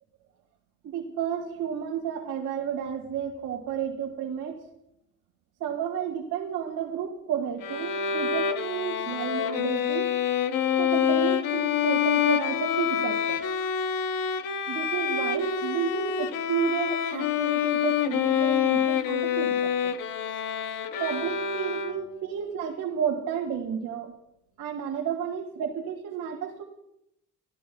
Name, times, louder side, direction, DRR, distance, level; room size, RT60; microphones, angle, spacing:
voice 1, 0.8-4.6 5.6-10.1 10.8-13.4 14.7-19.9 21.0-24.1 24.6-26.6, right 8 dB, 65° right, -2 dB, 2.0 m, -31 dB
Bowed string instrument, 7.6-22.3, left 8 dB, 85° left, 1.0 m, -27 dB
29.0 x 13.5 x 2.3 m, 0.80 s
cardioid pair, 170°, 33 cm